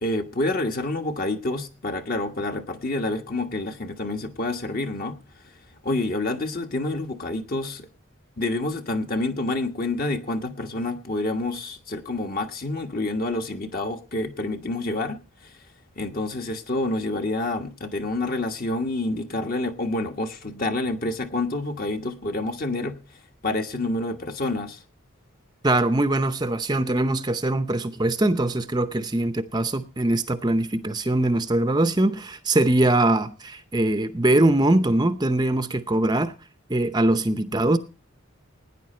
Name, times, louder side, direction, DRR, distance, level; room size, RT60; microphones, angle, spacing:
voice 1, 0.0-5.2 5.8-7.9 8.4-15.6 16.0-23.0 23.4-24.8, left 2 dB, 40° left, 1.3 m, -28 dB
voice 2, 25.6-36.3 36.7-37.8, right 1 dB, 20° right, 0.6 m, -22 dB
17.0 x 9.9 x 4.3 m
head